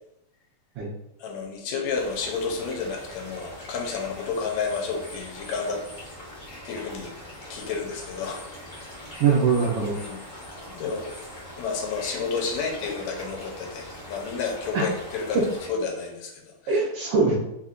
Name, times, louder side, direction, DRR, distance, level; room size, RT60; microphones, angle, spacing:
voice 1, 1.2-5.8 6.6-7.1 7.5-8.5 10.0-10.2 10.7-11.1 11.6-15.4 15.7-16.8, left 5 dB, 80° left, 1 dB, 1.9 m, -31 dB
sound 1, 1.9-15.7, left 1 dB, 50° left, 1.3 m, -42 dB
voice 2, 9.2-10.0 14.7-14.9 16.7-17.3, right 5 dB, 75° right, -3 dB, 1.4 m, -22 dB
4.3 x 3.9 x 2.5 m, 0.84 s
omnidirectional pair, 3.3 m